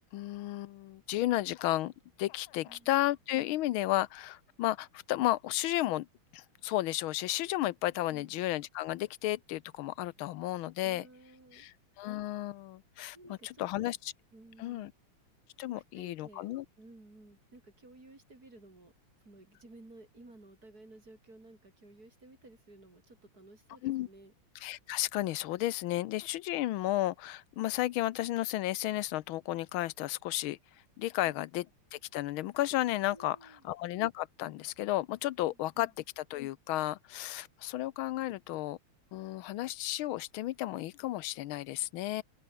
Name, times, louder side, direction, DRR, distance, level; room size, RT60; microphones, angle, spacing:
voice 1, 0.1-1.9 2.2-6.1 6.3-11.1 11.5-13.2 13.4-14.1 14.6-14.9 15.6-16.6 23.8-24.1 24.6-30.6 31.0-31.7 31.9-33.4 33.6-35.9 36.2-38.8 39.1-42.2, left 15 dB, 80° left, 1.4 m, -33 dB
voice 2, 10.8-11.7 13.1-14.0 14.3-14.9 15.7-16.5 16.8-18.9 19.2-24.3 31.2-31.5 33.1-33.6 35.4-35.9, right 2 dB, 40° right, 6.8 m, -55 dB
open air
omnidirectional pair, 2.4 m